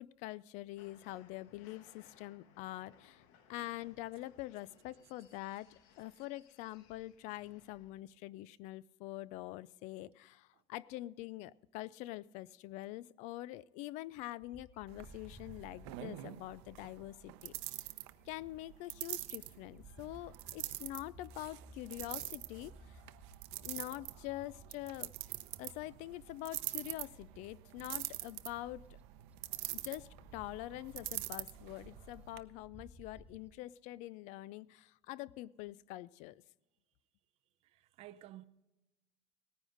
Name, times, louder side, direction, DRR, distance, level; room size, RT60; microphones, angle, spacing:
voice 1, 0.0-3.2 3.5-17.8 18.3-23.0 23.6-25.1 25.6-28.9 29.7-36.4, left 16 dB, 55° left, 0.4 m, -45 dB
sound 1, 0.8-8.0, left 8 dB, 75° left, 1.3 m, -65 dB
Bird, 14.4-18.9 19.3-33.5, right 1 dB, 10° right, 0.7 m, -59 dB
sound 2, 14.9-32.4, right 18 dB, 85° right, 0.7 m, -45 dB
voice 2, 37.6-38.4, right 14 dB, 45° right, 0.6 m, -53 dB
18.5 x 10.0 x 3.9 m
cardioid pair, 160°, 14 cm